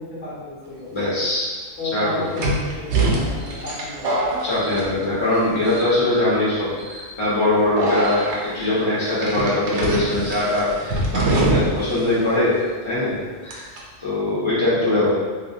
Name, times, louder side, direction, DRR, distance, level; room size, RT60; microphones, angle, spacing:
voice 1, 0.0-0.9 1.8-4.2 14.8-15.0, left 2 dB, 85° left, -8 dB, 1.4 m, -33 dB
voice 2, 0.9-1.5 1.9-2.1 4.4-12.5 12.8-13.7 14.0-15.1, left 2 dB, 25° left, -10 dB, 1.1 m, -22 dB
sound 1, 1.0-1.1 2.4-5.4 5.6-6.1 6.8-7.0 7.8-8.4 9.2-11.9 12.2-12.3 13.5-13.8, right 2 dB, 70° right, 0.9 m, -24 dB
3.1 x 2.8 x 2.5 m, 1.5 s
omnidirectional pair, 1.2 m